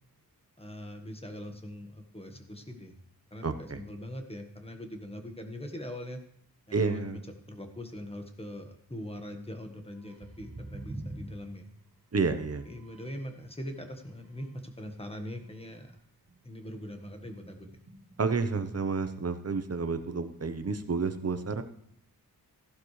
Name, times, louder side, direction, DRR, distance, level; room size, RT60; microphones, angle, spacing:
voice 1, 0.6-2.9 3.3-6.2 6.7-7.0 7.5-11.7 12.6-16.0 16.4-17.7, left 1 dB, 15° left, 5 dB, 1.4 m, -42 dB
voice 2, 3.4-3.8 6.7-7.2 12.1-12.6 18.2-21.6, right 4 dB, 40° right, 9 dB, 1.0 m, -30 dB
sound 1, 10.0-13.4 13.7-16.0 16.3-16.5 16.8-18.5, right 1 dB, 60° right, 2.7 m, -47 dB
15.0 x 11.5 x 3.3 m, 0.71 s
wide cardioid pair, 120°, 36 cm